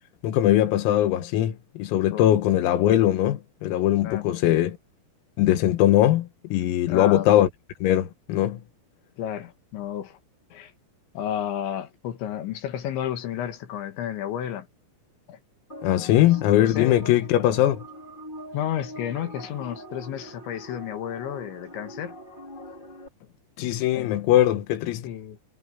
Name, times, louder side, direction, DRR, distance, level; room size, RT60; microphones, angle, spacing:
voice 1, 0.2-4.8 5.4-7.5 7.8-8.6 15.8-17.8 23.6-25.1, left 13 dB, 85° left, 4.4 m, -21 dB
voice 2, 6.9-7.3 9.2-10.2 10.5-10.7 11.2-14.7 15.3-15.4 16.1-16.3 16.6-17.0 18.5-22.2 23.9-24.1 25.0-25.4, left 10 dB, 70° left, 3.6 m, -32 dB
sound 1, 15.7-23.1, equal, 10° left, 5.0 m, -42 dB
omnidirectional pair, 6.0 m